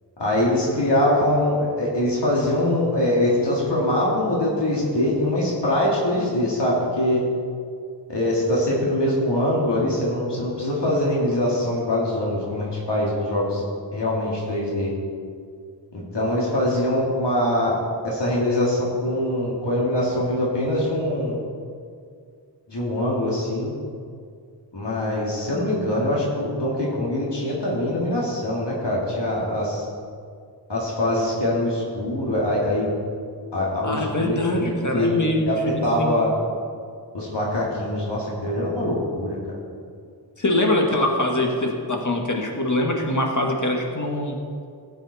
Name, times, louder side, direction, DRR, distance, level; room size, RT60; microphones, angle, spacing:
voice 1, 0.2-7.2 8.1-13.6 13.9-14.9 15.9-17.8 18.0-21.4 22.7-23.7 24.7-29.9 30.7-32.9 33.5-35.1 35.4-36.3 37.1-39.4, left 1 dB, 75° left, -5 dB, 2.5 m, -23 dB
voice 2, 33.8-36.1 40.4-44.4, left 1 dB, 45° left, 1 dB, 1.9 m, -23 dB
16.5 x 8.1 x 4.3 m, 2.2 s
wide cardioid pair, 85°, 42 cm